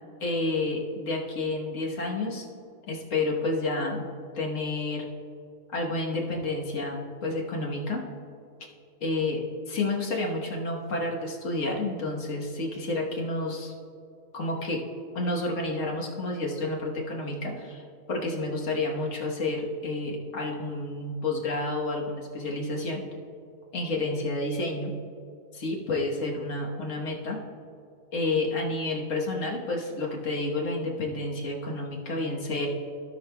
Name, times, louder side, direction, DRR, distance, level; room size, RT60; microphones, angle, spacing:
voice 1, 0.2-2.5 2.9-4.1 4.3-5.1 5.7-8.0 9.0-13.7 14.3-14.8 15.1-17.8 18.1-23.0 23.7-25.0 25.5-27.4 28.1-32.7, left 2 dB, 65° left, -1 dB, 1.5 m, -30 dB
16.5 x 6.1 x 2.2 m, 2.5 s
omnidirectional pair, 1.5 m